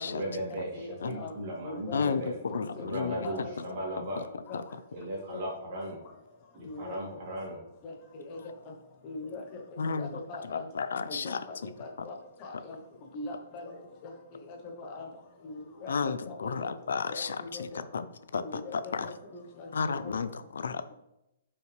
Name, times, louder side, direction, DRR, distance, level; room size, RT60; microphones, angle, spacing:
voice 1, 0.0-2.4 2.7-4.3 4.9-6.0 6.5-7.6, right 1 dB, 35° right, -4 dB, 2.9 m, -37 dB
voice 2, 0.7-1.3 1.6-2.6 3.2-3.5 4.5-4.6 5.3-5.4 6.6-6.9 7.8-8.4 9.0-9.4 10.0-10.6 11.1-11.3 11.8-12.1 12.4-12.8 13.1-13.7 14.8-15.1 15.4-16.7 17.1-17.2 17.5-17.8 18.4-20.0, left 3 dB, 25° left, 2 dB, 0.9 m, -41 dB
voice 3, 1.9-3.6 4.2-4.3 4.5-4.6 9.8-11.7 15.9-17.7 17.9-18.1 18.3-19.1 19.7-20.9, left 5 dB, 85° left, 12 dB, 0.6 m, -33 dB
9.0 x 5.5 x 3.3 m, 0.86 s
hypercardioid pair, 170°, 0 cm